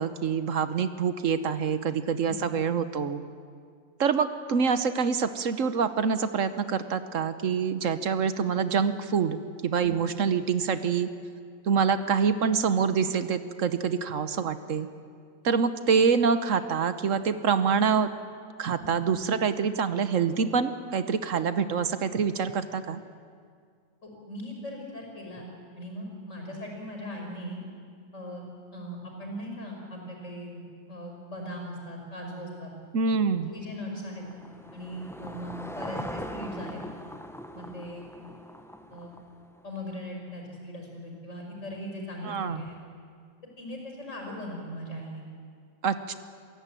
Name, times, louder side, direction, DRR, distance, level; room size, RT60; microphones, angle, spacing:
voice 1, 0.0-3.2 4.0-9.4 9.6-11.1 11.7-14.9 15.4-18.1 18.6-23.0 32.9-33.5 42.2-42.6 45.8-46.1, right 6 dB, 70° right, 11 dB, 1.3 m, -26 dB
voice 2, 18.8-19.2 24.0-25.5 25.8-27.6 28.1-28.4 28.7-30.6 30.9-32.7 33.5-34.2 34.7-36.8 37.5-38.1 38.9-39.1 39.6-42.7 43.6-45.2, equal, 65° left, 1 dB, 5.9 m, -39 dB
Car passing by / Engine, 33.3-39.8, equal, ahead, 0.8 m, -41 dB
27.5 x 16.0 x 9.1 m, 2.1 s
omnidirectional pair, 1.4 m